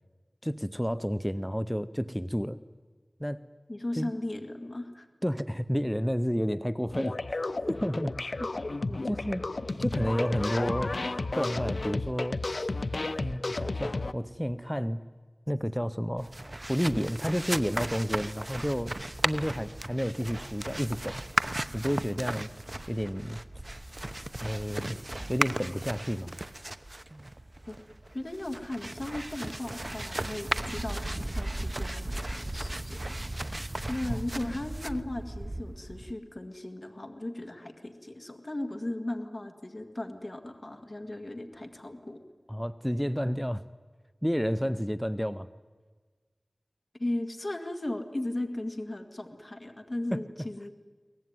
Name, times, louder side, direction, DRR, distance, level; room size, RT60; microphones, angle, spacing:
voice 1, 0.4-2.6 3.2-3.4 3.9-4.1 5.2-7.4 7.7-8.5 9.0-9.5 9.8-11.0 11.3-12.6 13.2-15.0 15.5-16.3 16.7-19.0 19.2-21.2 21.7-22.5 22.9-23.4 24.4-26.4 34.1-34.2 42.5-43.6 44.2-45.5 50.1-50.2, equal, ahead, 13 dB, 0.6 m, -31 dB
voice 2, 3.7-5.1 8.9-9.1 27.7-27.8 28.1-33.0 33.9-42.2 47.0-50.7, left 1 dB, 40° left, 7 dB, 2.0 m, -36 dB
sound 1, 6.9-14.1, left 2 dB, 65° left, 0.7 m, -32 dB
sound 2, 16.2-36.1, right 1 dB, 30° right, 0.8 m, -36 dB
23.0 x 19.0 x 9.5 m, 1.4 s
wide cardioid pair, 55°, 0 cm